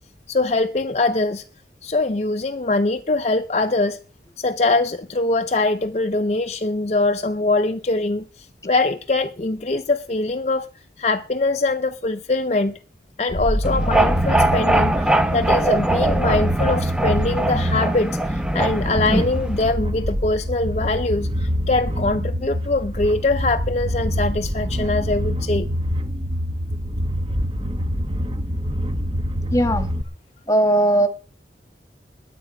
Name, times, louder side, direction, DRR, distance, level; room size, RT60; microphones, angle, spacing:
voice 1, 0.3-1.5 1.8-4.0 4.4-10.7 11.0-12.8 13.2-25.7, left 2 dB, 35° left, 0.6 m, -23 dB
sound 1, 13.3-30.0, equal, 30° right, 1.0 m, -25 dB
sound 2, 13.6-19.7, right 1 dB, 5° right, 0.8 m, -21 dB
voice 2, 29.5-29.9 30.5-31.1, right 1 dB, 20° left, 1.4 m, -18 dB
20.5 x 8.4 x 5.2 m
head